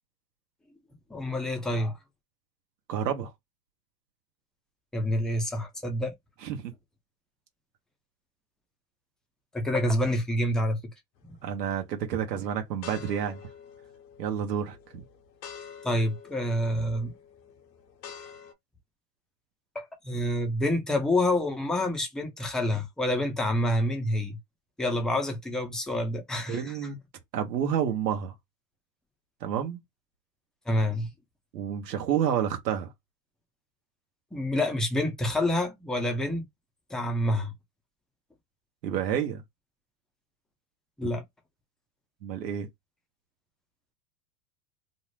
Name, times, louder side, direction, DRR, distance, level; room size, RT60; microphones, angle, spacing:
voice 1, 1.1-2.0 4.9-6.1 9.5-10.8 11.2-11.3 15.8-17.1 19.8-24.4 24.8-26.8 30.7-31.1 34.3-36.4 36.9-37.5 41.0-41.2, left 1 dB, ahead, 0.3 m, -27 dB
voice 2, 2.9-3.3 6.4-6.7 11.4-13.4 14.2-14.8 26.5-27.0 27.3-28.3 29.4-29.8 31.5-32.9 38.8-39.4 42.2-42.7, right 9 dB, 85° right, 0.8 m, -29 dB
sound 1, 11.2-11.6 12.2-18.5, left 7 dB, 90° left, 0.8 m, -47 dB
2.6 x 2.0 x 3.0 m
hypercardioid pair, 105°, 48 cm